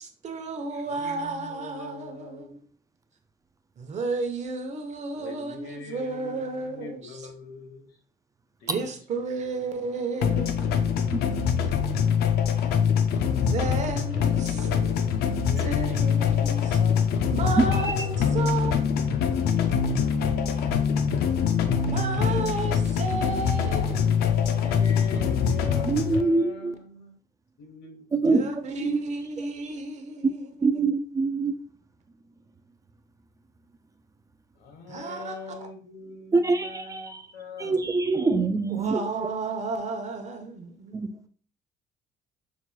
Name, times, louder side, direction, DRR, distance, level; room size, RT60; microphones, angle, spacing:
voice 1, 0.0-2.6 3.8-7.3 8.7-10.9 13.4-14.7 15.6-16.8 17.3-18.8 21.8-24.0 28.2-30.8 34.9-35.7 38.7-40.9, right 3 dB, 45° right, 0.8 m, -32 dB
voice 2, 0.7-2.5 5.1-7.9 8.6-8.9 9.3-9.6 14.1-15.1 15.5-17.6 18.0-18.9 23.4-27.2 27.6-28.5 34.6-38.5, left 3 dB, 90° left, 1.2 m, -42 dB
sound 1, 10.2-26.2, left 7 dB, 70° left, 0.5 m, -24 dB
voice 3, 25.8-26.7 28.1-28.4 28.8-29.0 30.6-31.5 36.3-37.2 37.6-39.0 40.9-41.3, right 3 dB, 20° right, 0.3 m, -24 dB
5.9 x 2.9 x 2.3 m
cardioid pair, 110°, 17 cm